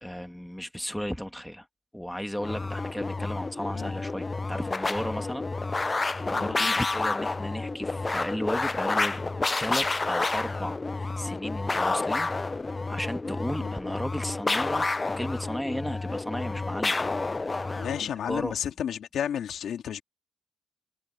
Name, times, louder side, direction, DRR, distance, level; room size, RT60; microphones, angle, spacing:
voice 1, 0.0-1.7 1.9-5.5 5.9-9.2 9.6-12.3 12.9-14.9 15.2-16.9 18.0-18.5, equal, 5° left, 2.1 m, -34 dB
sound 1, 2.4-18.1, left 3 dB, 25° left, 0.3 m, -29 dB
voice 2, 17.8-20.0, left 9 dB, 65° left, 2.6 m, -32 dB
cardioid pair, 90°, 0 cm